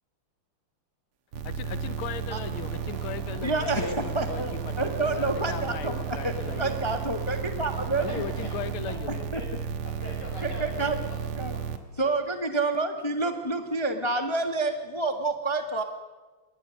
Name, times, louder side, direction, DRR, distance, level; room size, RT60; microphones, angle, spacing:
sound 1, 1.3-11.8, right 7 dB, 85° right, 2.1 m, -33 dB
voice 1, 1.4-6.8 8.0-9.1, left 9 dB, 75° left, 13 dB, 1.8 m, -38 dB
sound 2, 2.5-8.7, right 5 dB, 45° right, 1.6 m, -45 dB
voice 2, 3.4-8.1 10.4-11.0 11.4-11.5 12.0-15.8, right 2 dB, 25° left, 6 dB, 0.6 m, -28 dB
voice 3, 7.7-8.5 8.9-11.7 11.9-12.1, left 1 dB, 50° left, -1 dB, 6.7 m, -44 dB
23.0 x 19.0 x 6.3 m, 1.3 s
omnidirectional pair, 2.4 m